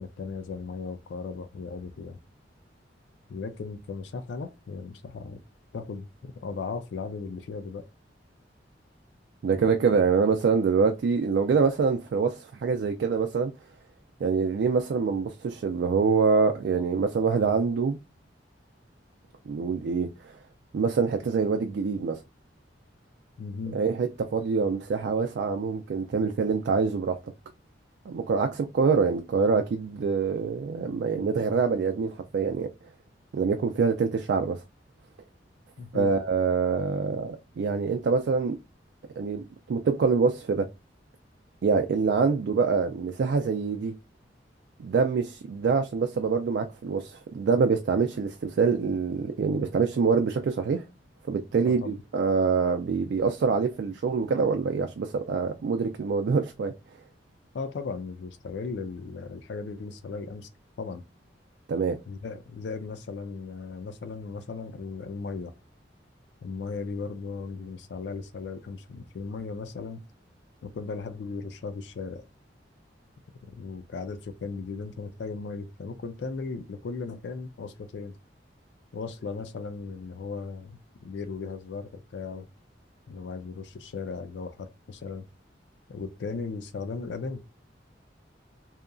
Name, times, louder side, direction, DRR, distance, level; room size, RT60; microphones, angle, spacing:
voice 1, 0.0-2.2 3.3-5.4 5.7-7.9 23.4-23.8 35.8-36.1 51.6-52.0 57.5-60.5 60.8-61.0 62.1-65.5 66.4-70.0 70.6-72.2 73.4-78.1 78.9-82.5 83.1-85.3 85.9-87.4, left 4 dB, 70° left, 0.4 m, -37 dB
voice 2, 9.4-13.5 14.2-18.0 19.5-20.3 20.7-22.2 23.7-27.2 28.1-32.7 33.3-34.6 35.9-38.6 39.2-40.7 41.6-43.9 44.8-50.8 51.3-56.7 61.7-62.0, right 5 dB, 65° right, 0.3 m, -25 dB
2.8 x 2.4 x 2.2 m
head